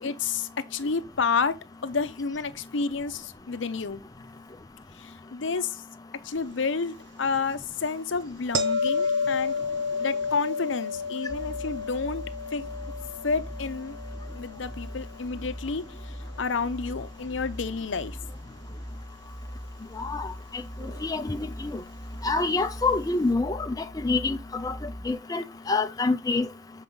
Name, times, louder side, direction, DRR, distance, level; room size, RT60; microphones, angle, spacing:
voice 1, 0.0-1.6 1.8-4.0 5.0-5.8 6.2-9.6 10.0-12.3 12.5-12.7 13.2-14.0 14.3-16.1 16.4-18.2, left 5 dB, 90° left, 0.7 m, -30 dB
sound 1, 8.5-15.5 20.8-21.0, left 4 dB, 70° right, 0.8 m, -31 dB
sound 2, 11.3-25.1, equal, 30° right, 3.2 m, -41 dB
voice 2, 20.0-20.3 21.0-21.8 22.2-26.5, left 3 dB, 20° left, 0.6 m, -27 dB
7.2 x 4.8 x 3.8 m
head